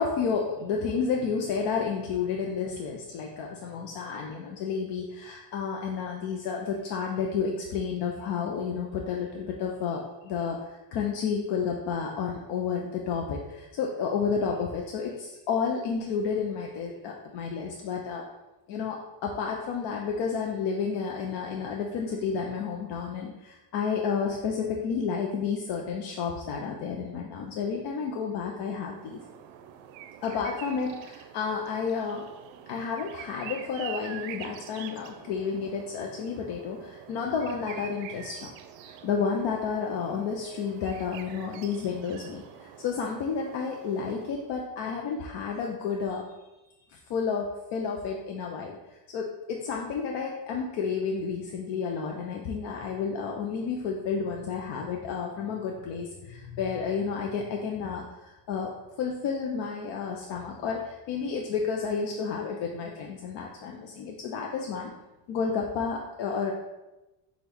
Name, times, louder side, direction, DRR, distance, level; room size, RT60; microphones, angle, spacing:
voice 1, 0.0-18.2 18.7-29.2 30.2-32.3 32.7-38.5 38.8-46.2 46.9-58.7 59.0-64.9 65.3-66.5, left 6 dB, 65° left, 0 dB, 0.6 m, -31 dB
sound 1, 28.7-44.6, right 10 dB, 80° right, 0.5 m, -46 dB
5.9 x 2.4 x 3.4 m, 1.0 s
cardioid pair, 125°, 45 cm